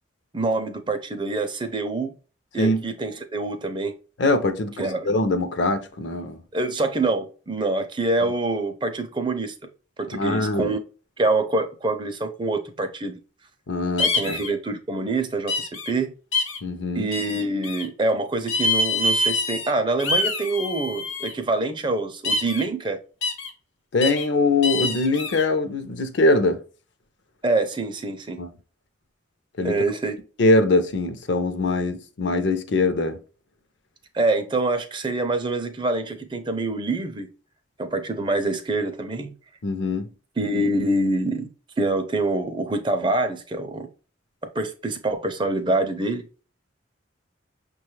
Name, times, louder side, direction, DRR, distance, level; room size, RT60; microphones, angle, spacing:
voice 1, 0.3-2.1 2.5-3.9 4.8-5.1 6.5-9.5 10.0-10.8 11.2-13.2 14.0-16.1 16.9-23.0 27.4-28.4 29.6-30.1 34.1-37.3 37.8-39.3 40.4-41.5 41.8-43.9 44.5-46.2, right 2 dB, 25° right, 0.4 m, -25 dB
voice 2, 4.2-6.4 10.1-10.7 13.7-14.4 16.6-17.1 23.9-26.6 28.4-28.5 29.6-29.8 30.4-33.2 39.6-40.1, left 2 dB, 65° left, 0.5 m, -22 dB
sound 1, 14.0-14.5 15.5-15.9 16.3-16.6 17.1-17.8 18.5-19.7 20.0-21.3 22.2-22.6 23.2-23.5 24.0-24.2 24.6-25.4, left 2 dB, 85° left, 0.8 m, -25 dB
5.9 x 2.3 x 3.1 m
head